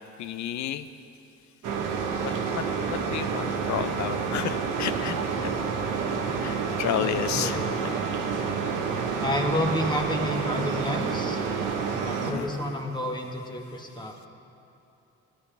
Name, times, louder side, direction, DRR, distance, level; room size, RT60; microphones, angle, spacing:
voice 1, 0.2-0.9 2.2-2.3 2.9-5.2 6.4-7.6 12.2-12.5, left 11 dB, 65° left, 13 dB, 0.6 m, -31 dB
sound 1, 1.6-12.3, right 5 dB, 85° right, 1.1 m, -29 dB
voice 2, 7.0-8.1 9.2-11.4 12.0-14.1, left 1 dB, 15° left, 2 dB, 1.3 m, -30 dB
16.5 x 11.0 x 3.4 m, 2.7 s
cardioid pair, 90°, 30 cm